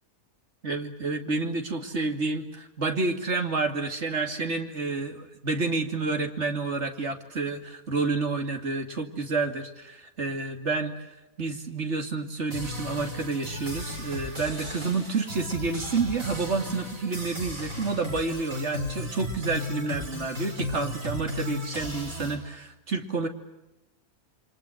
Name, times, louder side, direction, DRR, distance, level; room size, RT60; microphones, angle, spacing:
voice 1, 0.6-10.9 11.4-23.3, right 3 dB, 50° right, 5 dB, 2.9 m, -29 dB
sound 1, 12.5-22.4, left 1 dB, 65° right, 6.5 m, -35 dB
28.5 x 25.0 x 8.0 m, 0.99 s
omnidirectional pair, 1.5 m